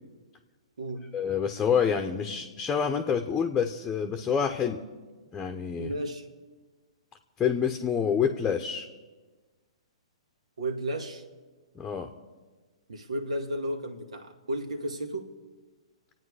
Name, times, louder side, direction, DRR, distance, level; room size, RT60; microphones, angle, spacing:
voice 1, 1.1-4.8 5.3-5.9 7.4-8.9 11.8-12.1, left 7 dB, 15° left, 5 dB, 0.9 m, -27 dB
voice 2, 5.8-6.3 10.6-11.2 12.9-15.3, right 1 dB, 80° right, 6 dB, 2.1 m, -33 dB
27.5 x 9.2 x 4.9 m, 1.3 s
hypercardioid pair, 130°, 3 cm